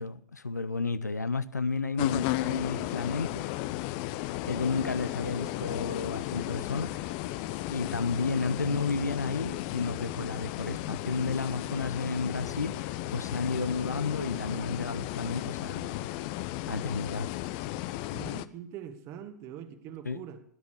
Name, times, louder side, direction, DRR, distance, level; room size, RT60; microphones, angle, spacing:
voice 1, 0.0-3.5 4.5-7.1 7.7-16.1 16.7-17.3 20.0-20.2, left 4 dB, 75° left, 0.9 m, -32 dB
sound 1, 2.0-18.5, left 16 dB, 35° left, 0.8 m, -34 dB
voice 2, 18.1-20.4, right 9 dB, 30° right, 1.7 m, -43 dB
19.0 x 10.5 x 6.6 m
figure-of-eight pair, 110°, 9 cm